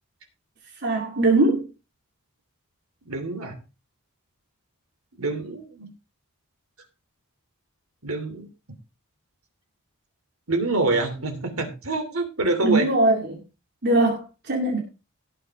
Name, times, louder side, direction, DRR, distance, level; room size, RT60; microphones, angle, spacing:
voice 1, 0.8-1.7 12.6-13.4 13.8-14.8, right 2 dB, 50° right, 2.3 m, -21 dB
voice 2, 3.0-3.6 5.1-5.9 8.0-8.4 10.5-12.9, right 2 dB, 70° right, 2.8 m, -26 dB
17.5 x 6.7 x 3.5 m
head